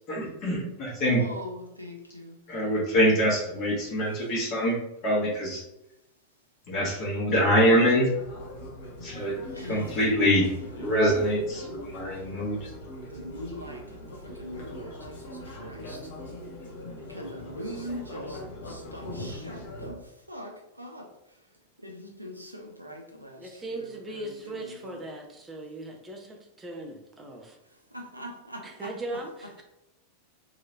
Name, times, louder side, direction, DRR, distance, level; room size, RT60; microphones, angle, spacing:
voice 1, 0.1-1.2 2.5-4.8 5.0-5.6 6.7-8.1 9.0-10.5 10.8-12.6, equal, 40° left, 1.4 m, -24 dB
voice 2, 1.2-1.9 9.5-10.4 13.2-13.7 14.4-14.6 17.1-18.3 18.9-20.0 20.3-20.5 20.8-21.0 22.2-22.3 22.8-23.0 24.1-24.2 24.6-24.9 28.1-28.3, equal, 90° right, 0.6 m, -40 dB
sound 1, 8.1-19.9, left 1 dB, 60° left, 0.9 m, -41 dB
voice 3, 23.4-27.6 28.6-29.6, right 1 dB, 15° right, 0.8 m, -39 dB
3.9 x 3.0 x 2.7 m
figure-of-eight pair, 90°, 0 cm